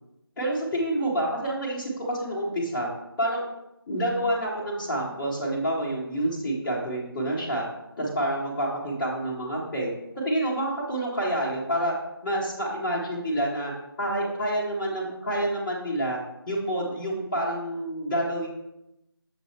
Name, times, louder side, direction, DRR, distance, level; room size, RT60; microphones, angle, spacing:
voice 1, 0.4-2.9 3.2-3.5 3.9-7.7 8.0-11.9 12.2-13.7 14.0-16.2 16.5-18.5, right 1 dB, 5° left, -8 dB, 0.5 m, -28 dB
6.9 x 4.0 x 4.5 m, 0.87 s
figure-of-eight pair, 160°, 13 cm